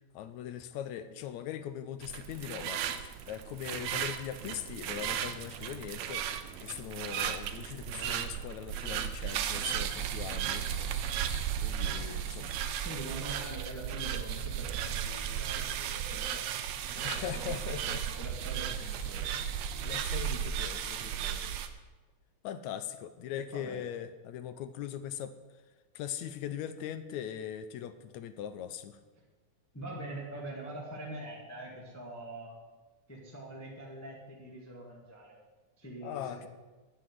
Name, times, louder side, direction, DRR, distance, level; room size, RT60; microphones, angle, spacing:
voice 1, 0.1-6.3 6.6-12.6 17.0-18.0 19.8-21.6 22.4-25.3 26.0-29.0 36.0-36.5, left 10 dB, 75° left, 11 dB, 1.8 m, -41 dB
sound 1, 2.0-21.7, right 9 dB, 70° right, 1.7 m, -35 dB
voice 2, 11.8-16.6 16.9-19.3 23.5-23.8 29.7-32.6 33.1-35.4 35.8-36.5, right 1 dB, 5° left, -4 dB, 1.4 m, -44 dB
9.8 x 7.7 x 9.3 m, 1.2 s
omnidirectional pair, 3.6 m